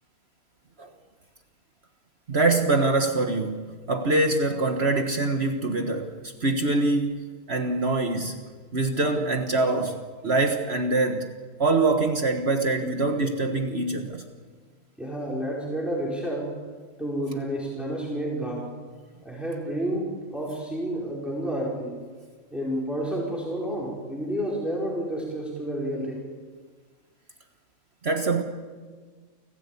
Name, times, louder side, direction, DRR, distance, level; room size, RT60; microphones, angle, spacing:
voice 1, 2.3-8.4 8.7-11.3 11.6-14.2 28.0-28.4, right 2 dB, 45° right, 5 dB, 1.7 m, -24 dB
voice 2, 15.0-16.5 17.0-18.7 19.2-22.0 22.5-26.3, right 1 dB, ahead, -4 dB, 4.6 m, -30 dB
30.0 x 15.0 x 8.5 m, 1.5 s
omnidirectional pair, 1.5 m